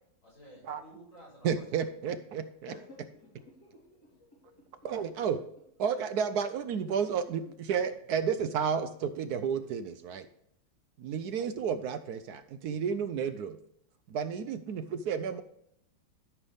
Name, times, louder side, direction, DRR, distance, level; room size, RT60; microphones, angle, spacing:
voice 1, 0.2-1.9 4.5-4.6 9.6-9.8 11.4-11.5, equal, 90° left, -6 dB, 5.0 m, -54 dB
voice 2, 1.4-2.7 4.8-5.4 5.8-10.3 11.0-13.6 14.1-15.4, right 7 dB, 70° right, 10 dB, 0.9 m, -32 dB
voice 3, 2.7-4.1 4.8-4.9, left 1 dB, 50° left, -7 dB, 4.2 m, -52 dB
13.0 x 5.5 x 3.4 m, 0.73 s
omnidirectional pair, 2.2 m